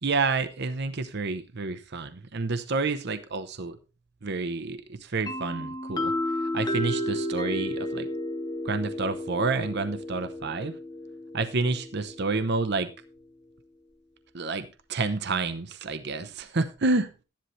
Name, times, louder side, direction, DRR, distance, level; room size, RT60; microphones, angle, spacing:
voice 1, 0.0-3.8 4.2-6.1 6.4-8.1 8.6-10.7 11.3-12.9 14.3-17.2, right 3 dB, 55° right, 10 dB, 0.8 m, -29 dB
sound 1, 5.3-12.9, left 1 dB, 20° left, 0.9 m, -33 dB
12.5 x 10.5 x 3.2 m, 0.30 s
head